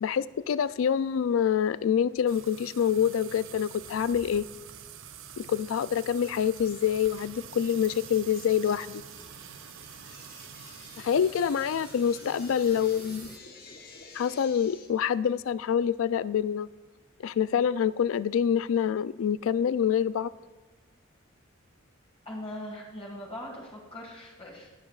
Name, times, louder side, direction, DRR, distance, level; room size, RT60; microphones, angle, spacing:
voice 1, 0.0-4.5 5.4-9.0 11.0-13.3 14.1-16.7 17.2-20.3, left 8 dB, 80° left, 17 dB, 0.3 m, -26 dB
sound 1, 2.3-13.4, right 8 dB, 70° right, 0.6 m, -46 dB
sound 2, 7.1-14.9, left 4 dB, 50° left, 1.2 m, -51 dB
voice 2, 22.3-24.7, left 1 dB, 30° left, -3 dB, 1.9 m, -40 dB
19.5 x 7.1 x 2.4 m, 1.3 s
head